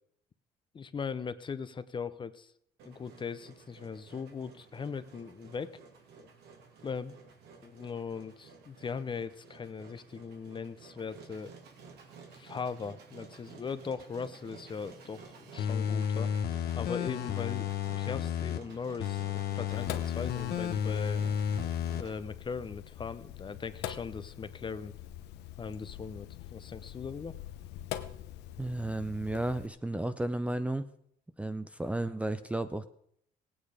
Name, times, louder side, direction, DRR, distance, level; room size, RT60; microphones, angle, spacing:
voice 1, 0.7-2.5 2.8-5.8 6.2-6.3 6.8-7.1 7.6-11.5 12.3-16.3 16.7-17.7 18.0-21.2 22.0-24.9 25.6-27.4, left 5 dB, 30° left, 14 dB, 0.7 m, -39 dB
Engine, 2.8-22.2, right 5 dB, 75° right, 2.5 m, -53 dB
sound 1, 15.6-18.6 19.0-22.0 22.4-22.5, left 8 dB, 70° left, 1.1 m, -32 dB
Sink (filling or washing), 19.7-29.7, left 12 dB, 85° left, 0.9 m, -44 dB
voice 2, 28.6-30.9 31.4-32.9, right 1 dB, 5° right, 11 dB, 0.5 m, -33 dB
16.5 x 8.9 x 4.9 m, 0.70 s
cardioid pair, 110°, 17 cm